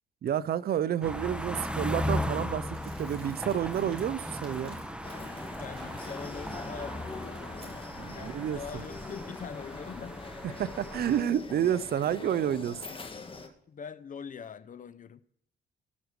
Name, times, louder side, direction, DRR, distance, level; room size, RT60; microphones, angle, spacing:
voice 1, 0.2-2.7 3.0-4.8 8.0-8.8 10.6-12.8, right 9 dB, 50° right, 0.6 m, -30 dB
sound 1, 1.0-11.2, left 1 dB, 5° right, 0.9 m, -37 dB
Crumpling crinkling, 2.6-6.5 6.9-8.2, right 2 dB, 30° right, 4.9 m, -56 dB
sound 2, 5.0-13.5, left 3 dB, 25° left, 1.6 m, -44 dB
voice 2, 5.6-7.9 8.1-10.2 13.7-15.2, left 6 dB, 40° left, 0.6 m, -43 dB
17.5 x 6.4 x 4.8 m
cardioid pair, 90°, 20 cm